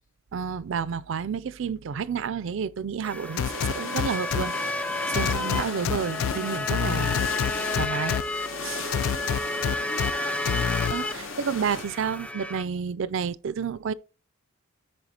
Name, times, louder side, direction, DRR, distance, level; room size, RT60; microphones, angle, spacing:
voice 1, 0.3-4.5 5.1-7.1 7.7-8.2 8.6-8.8 10.9-13.9, right 6 dB, 65° right, 0.4 m, -30 dB
sound 1, 3.0-12.6, left 2 dB, 5° left, 0.3 m, -32 dB
sound 2, 3.4-4.4 5.1-6.3 6.7-8.2 8.9-10.1 10.5-10.9, left 8 dB, 90° left, 0.3 m, -26 dB
sound 3, 3.4-11.8, left 4 dB, 70° left, 1.0 m, -37 dB
voice 2, 8.7-9.5 9.8-10.9, left 4 dB, 40° left, 0.8 m, -46 dB
13.5 x 5.4 x 2.9 m
head